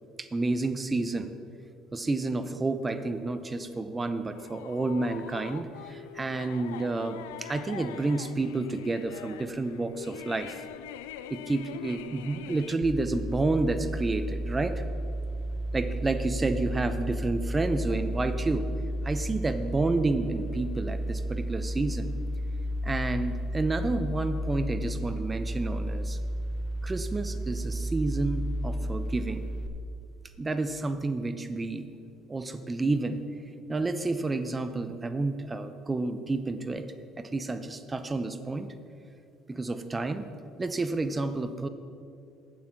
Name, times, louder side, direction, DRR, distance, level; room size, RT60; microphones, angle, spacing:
voice 1, 0.2-1.3 1.9-10.7 11.3-14.7 15.7-18.7 19.0-22.1 22.8-26.2 26.8-29.4 30.4-31.9 32.3-33.2 33.7-36.8 37.2-38.7 39.5-40.2 40.6-41.7, right 3 dB, 25° right, 10 dB, 0.7 m, -30 dB
sound 1, 4.3-12.8, left 10 dB, 90° left, 0.4 m, -44 dB
sound 2, 12.8-29.7, equal, 55° left, 0.8 m, -32 dB
8.7 x 7.4 x 5.8 m, 2.4 s
hypercardioid pair, 70°, 0 cm